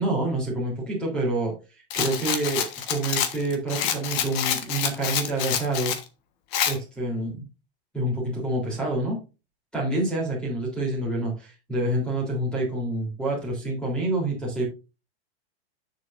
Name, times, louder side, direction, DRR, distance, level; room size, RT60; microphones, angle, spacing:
voice 1, 0.0-5.9 6.6-7.4 7.9-9.2 9.7-14.6, right 2 dB, 5° left, -2 dB, 3.5 m, -27 dB
Rattle, 1.9-6.0 6.5-6.8, left 9 dB, 35° left, 1.4 m, -27 dB
10.5 x 6.8 x 2.6 m, 0.29 s
supercardioid pair, 160°, 31 cm